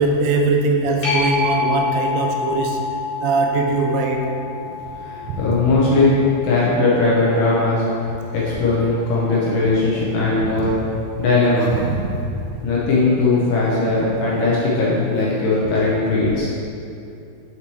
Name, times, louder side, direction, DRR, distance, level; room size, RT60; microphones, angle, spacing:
voice 1, 0.0-2.8 3.2-4.3 5.3-5.4 10.4-10.7 11.8-12.2, right 3 dB, 80° right, 2 dB, 2.4 m, -21 dB
sound 1, 1.0-8.2 13.7-13.8, left 4 dB, 60° left, 1.5 m, -27 dB
voice 2, 5.0-7.8 8.3-10.8 11.2-11.8 12.6-16.5, left 3 dB, 75° left, -6 dB, 2.2 m, -19 dB
6.8 x 5.8 x 3.1 m, 2.6 s
omnidirectional pair, 4.5 m